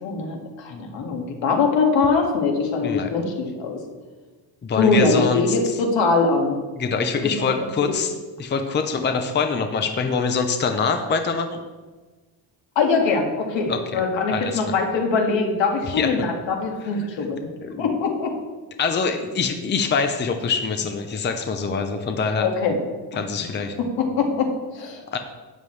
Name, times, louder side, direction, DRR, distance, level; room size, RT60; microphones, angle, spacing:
voice 1, 0.0-3.8 4.7-6.6 7.2-7.5 12.8-17.5 17.8-18.3 22.4-22.8 24.0-25.0, left 4 dB, 75° left, 2 dB, 2.1 m, -22 dB
voice 2, 4.6-5.8 6.8-11.6 13.7-14.0 14.3-14.6 15.8-16.1 17.6-17.9 18.8-22.5 23.2-23.7 25.1-25.2, left 5 dB, 25° left, 6 dB, 0.6 m, -24 dB
12.5 x 9.5 x 3.3 m, 1.3 s
cardioid pair, 160°, 44 cm